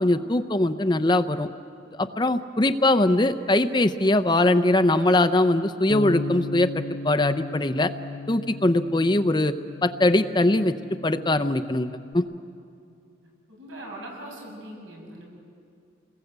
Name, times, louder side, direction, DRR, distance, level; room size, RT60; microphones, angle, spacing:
voice 1, 0.0-1.5 1.9-6.7 7.0-7.9 8.3-9.5 9.8-10.7 11.0-12.3, left 2 dB, 25° left, 11 dB, 0.6 m, -21 dB
Bass guitar, 5.9-12.1, left 3 dB, 70° left, 0.8 m, -36 dB
voice 2, 13.5-15.2, right 1 dB, 85° right, -1 dB, 7.7 m, -40 dB
29.0 x 20.5 x 8.1 m, 2.5 s
head